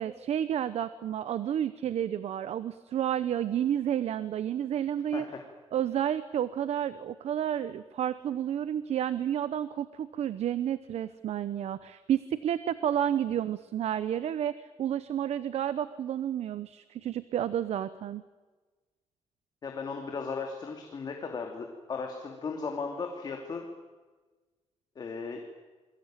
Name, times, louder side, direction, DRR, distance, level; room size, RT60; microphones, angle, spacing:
voice 1, 0.0-5.2 5.7-18.2, right 10 dB, 65° right, 14 dB, 0.9 m, -31 dB
voice 2, 19.6-23.6 25.0-25.4, left 4 dB, 35° left, 3 dB, 2.8 m, -36 dB
28.0 x 22.5 x 9.0 m, 1.3 s
wide cardioid pair, 175°, 12 cm